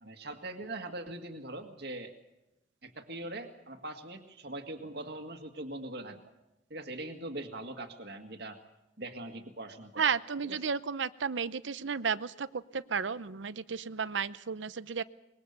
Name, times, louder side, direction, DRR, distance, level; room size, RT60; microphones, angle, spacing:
voice 1, 0.0-2.1 2.8-6.2 6.7-8.6 9.0-10.1 10.4-10.6, right 2 dB, 60° right, 5 dB, 2.0 m, -41 dB
voice 2, 10.0-15.0, right 6 dB, 85° right, 15 dB, 0.7 m, -33 dB
25.0 x 21.5 x 6.7 m, 0.93 s
head